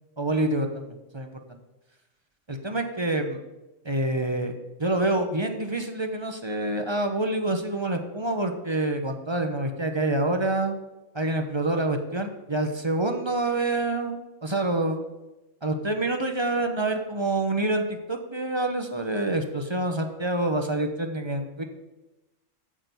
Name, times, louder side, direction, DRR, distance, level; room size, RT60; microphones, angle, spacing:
voice 1, 0.2-1.6 2.5-3.4 3.8-4.5 4.8-10.7 11.1-15.0 15.6-21.6, right 2 dB, 25° right, 5 dB, 0.9 m, -27 dB
8.8 x 6.2 x 8.2 m, 1.0 s
omnidirectional pair, 1.3 m